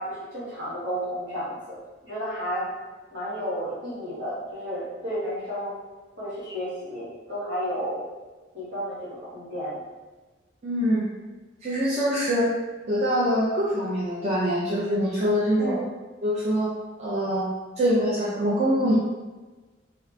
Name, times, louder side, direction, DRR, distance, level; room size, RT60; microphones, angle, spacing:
voice 1, 0.0-1.8 2.0-2.7 3.1-5.7 6.2-8.1 8.5-9.8 15.6-15.9, equal, 70° right, -9 dB, 1.5 m, -32 dB
voice 2, 10.6-11.1 11.6-12.5 12.9-15.8 16.2-16.7 17.0-17.5 17.8-19.0, equal, 35° right, -8 dB, 0.5 m, -24 dB
2.8 x 2.4 x 3.3 m, 1.3 s
head